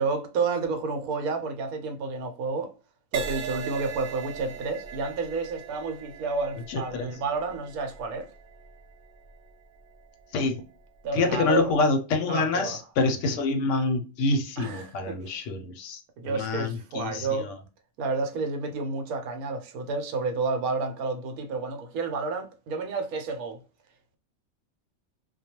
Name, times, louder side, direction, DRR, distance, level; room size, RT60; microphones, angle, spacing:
voice 1, 0.0-2.7 3.1-8.3 11.0-11.7 12.3-12.8 14.6-15.2 16.2-17.5 18.0-23.6, right 4 dB, 85° right, 1.1 m, -30 dB
Crash cymbal, 3.1-10.8 11.4-11.7, right 7 dB, 65° right, 0.7 m, -40 dB
voice 2, 6.7-7.1 10.3-10.6 11.1-17.6, left 3 dB, 65° left, 0.8 m, -27 dB
2.2 x 2.2 x 2.8 m
omnidirectional pair, 1.5 m